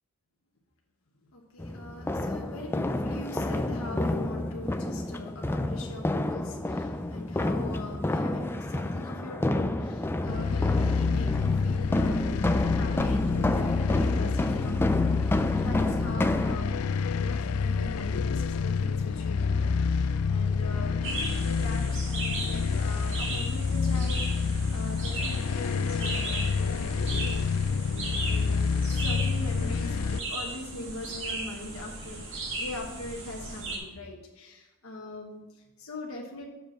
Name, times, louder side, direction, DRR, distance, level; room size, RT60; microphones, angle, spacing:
voice 1, 1.2-15.1 15.5-36.5, left 1 dB, 65° left, -1 dB, 1.1 m, -41 dB
sound 1, 1.6-16.6, left 1 dB, 10° left, 0.3 m, -29 dB
sound 2, 10.3-30.2, left 5 dB, 80° left, 0.4 m, -28 dB
sound 3, 21.0-33.8, right 2 dB, 60° right, 1.9 m, -37 dB
6.8 x 5.1 x 5.9 m, 1.1 s
head